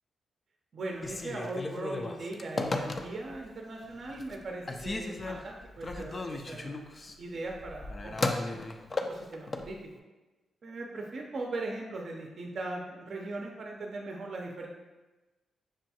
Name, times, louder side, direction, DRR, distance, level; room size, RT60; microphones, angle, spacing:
voice 1, 0.7-8.6 9.1-9.8 10.6-14.7, right 2 dB, 60° right, 0 dB, 0.5 m, -39 dB
Telephone, 0.9-3.4 3.9-4.4 4.7-9.7, left 2 dB, 40° left, 0.4 m, -35 dB
6.1 x 2.2 x 2.8 m, 1.1 s
cardioid pair, 65°, 0 cm